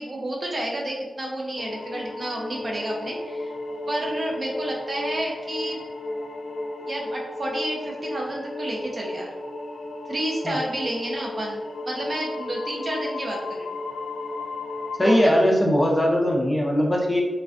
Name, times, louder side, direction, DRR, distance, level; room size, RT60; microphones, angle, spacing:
voice 1, 0.0-3.5 3.9-5.8 6.9-9.3 10.1-13.7 15.0-15.4, right 1 dB, 45° right, -2 dB, 0.5 m, -30 dB
sound 1, 1.6-15.2, left 2 dB, 85° left, 0.3 m, -34 dB
voice 2, 15.0-17.2, equal, 15° left, -2 dB, 0.4 m, -20 dB
2.3 x 2.2 x 2.4 m, 1.3 s
cardioid pair, 70°, 0 cm